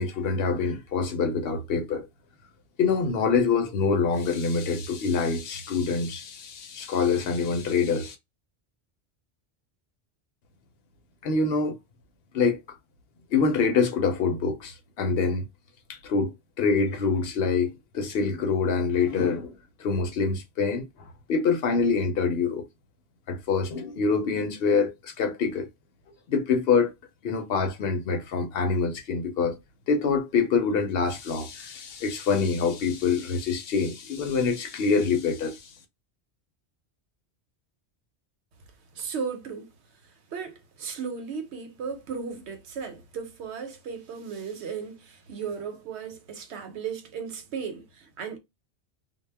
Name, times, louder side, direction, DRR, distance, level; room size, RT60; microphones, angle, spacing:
voice 1, 0.0-2.1 2.8-8.2 11.2-11.8 12.3-12.6 13.3-15.4 16.0-16.3 16.6-19.5 19.8-20.8 21.3-22.7 23.3-25.7 26.3-26.9 27.2-29.6 29.9-35.7, left 5 dB, 70° left, 0.8 m, -25 dB
voice 2, 38.9-39.7 40.3-48.4, right 6 dB, 85° right, 0.9 m, -35 dB
2.2 x 2.0 x 3.2 m
omnidirectional pair, 1.1 m